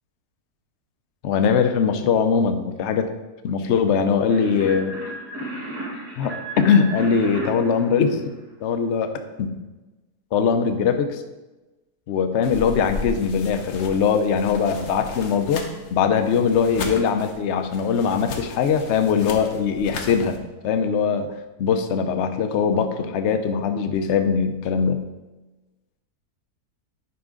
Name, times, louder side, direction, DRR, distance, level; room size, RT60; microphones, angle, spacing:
voice 1, 1.2-3.1 3.4-5.0 6.2-8.2 8.6-9.1 9.4-9.5 10.3-11.2 12.1-15.6 15.9-20.4 20.6-21.3 21.6-25.1, left 6 dB, 60° left, 7 dB, 0.8 m, -21 dB
sound 1, 4.3-8.7, right 2 dB, 45° right, 2.3 m, -34 dB
sound 2, 12.4-20.4, left 4 dB, 80° left, 1.4 m, -36 dB
9.6 x 5.1 x 3.8 m, 1.1 s
omnidirectional pair, 1.7 m